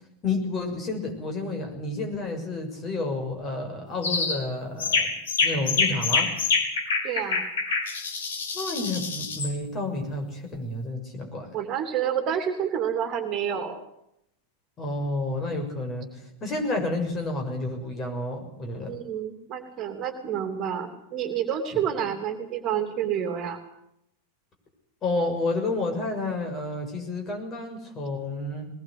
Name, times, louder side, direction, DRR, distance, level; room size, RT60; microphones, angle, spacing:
voice 1, 0.2-5.1 5.4-6.3 8.5-11.5 14.8-19.0 21.7-21.9 25.0-28.7, left 2 dB, 25° left, 4 dB, 6.6 m, -30 dB
sound 1, 4.0-4.4 4.8-9.5, left 4 dB, 60° left, 3.7 m, -26 dB
voice 2, 7.0-7.4 11.5-13.8 18.9-23.6, right 9 dB, 35° right, 7 dB, 3.0 m, -29 dB
21.5 x 20.0 x 8.2 m, 0.78 s
figure-of-eight pair, 90°, 0 cm